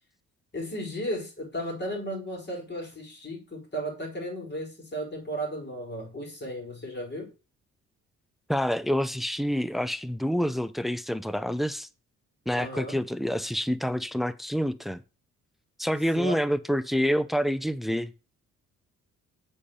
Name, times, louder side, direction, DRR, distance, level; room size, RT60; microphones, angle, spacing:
voice 1, 0.5-7.3 12.5-13.0 16.1-16.4, equal, 35° left, 4.8 m, -35 dB
voice 2, 8.5-11.9 12.5-15.0 15.8-18.1, equal, ahead, 0.5 m, -27 dB
7.2 x 4.3 x 6.5 m
cardioid pair, 90°, 30 cm